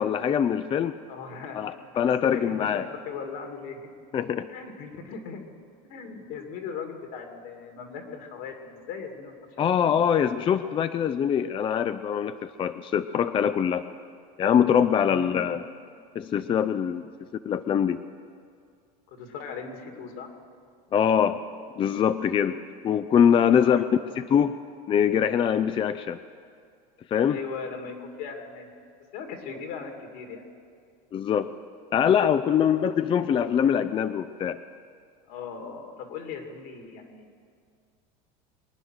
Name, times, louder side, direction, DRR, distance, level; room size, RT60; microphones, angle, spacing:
voice 1, 0.0-1.0 1.5-2.9 4.1-4.5 9.6-13.8 14.4-15.6 16.2-17.1 17.4-18.0 20.9-21.4 21.8-23.8 24.2-24.6 24.9-26.2 27.1-27.4 31.1-31.5 31.9-34.6, left 8 dB, 25° left, 11 dB, 0.4 m, -23 dB
voice 2, 1.1-1.6 1.9-2.7 3.1-3.8 4.4-5.4 5.8-10.0 15.0-15.4 19.1-20.3 23.4-23.8 24.1-24.2 27.2-28.7 29.1-30.5 32.5-32.7 33.1-33.3 35.3-37.3, left 5 dB, 70° left, 4 dB, 2.7 m, -39 dB
23.5 x 9.5 x 6.3 m, 2.2 s
supercardioid pair, 120°, 20 cm